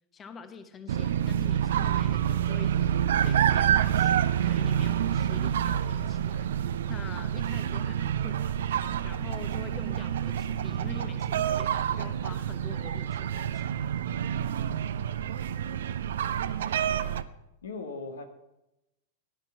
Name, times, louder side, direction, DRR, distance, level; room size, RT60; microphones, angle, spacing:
voice 1, 0.1-14.1, left 5 dB, 25° left, 9 dB, 1.1 m, -46 dB
sound 1, 0.9-17.2, right 9 dB, 60° right, 0.6 m, -28 dB
voice 2, 15.6-16.3 17.6-18.3, left 3 dB, 70° left, 6 dB, 1.8 m, -41 dB
16.0 x 10.5 x 5.8 m, 0.92 s
figure-of-eight pair, 90°, 0 cm